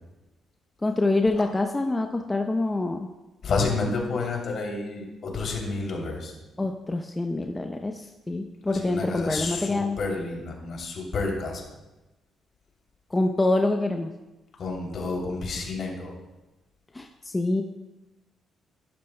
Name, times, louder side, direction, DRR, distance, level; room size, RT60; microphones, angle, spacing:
voice 1, 0.8-3.0 6.6-10.0 13.1-14.1 16.9-17.6, left 2 dB, 20° left, 3 dB, 0.7 m, -26 dB
voice 2, 3.4-6.3 8.7-11.7 14.6-16.1, left 3 dB, 60° left, 0 dB, 2.8 m, -30 dB
12.0 x 11.5 x 2.2 m, 1.0 s
cardioid pair, 90°, 0 cm